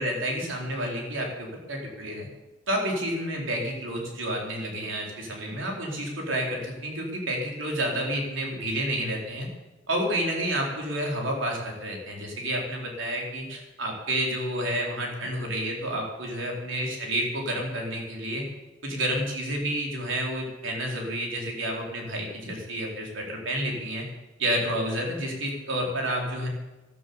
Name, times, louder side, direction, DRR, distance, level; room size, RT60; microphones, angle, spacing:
voice 1, 0.0-2.3 2.7-9.5 9.9-18.4 18.8-24.0 24.4-26.5, right 1 dB, 70° right, -1 dB, 4.3 m, -30 dB
13.5 x 12.5 x 7.2 m, 1.1 s
head